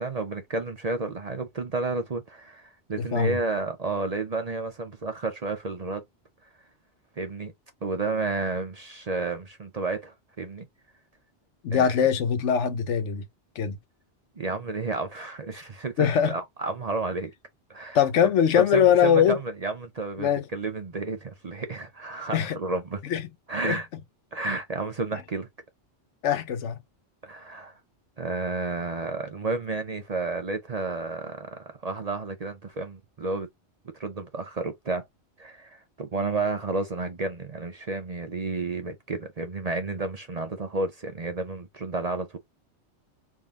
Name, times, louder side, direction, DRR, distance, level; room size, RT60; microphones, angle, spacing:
voice 1, 0.0-6.0 7.2-7.5 7.8-10.7 11.7-12.1 14.4-17.3 17.7-18.0 18.6-23.0 23.5-23.9 24.3-25.5 27.2-27.8 28.2-33.5 34.0-35.0 35.4-42.4, right 3 dB, 40° right, 0.6 m, -31 dB
voice 2, 3.0-3.4 11.6-13.2 13.6-13.8 16.0-16.4 17.9-19.4 20.2-20.4 22.3-22.6 23.0-23.2 23.6-23.8 26.2-26.8, left 8 dB, 80° left, 1.1 m, -22 dB
3.7 x 2.7 x 3.5 m
omnidirectional pair, 1.2 m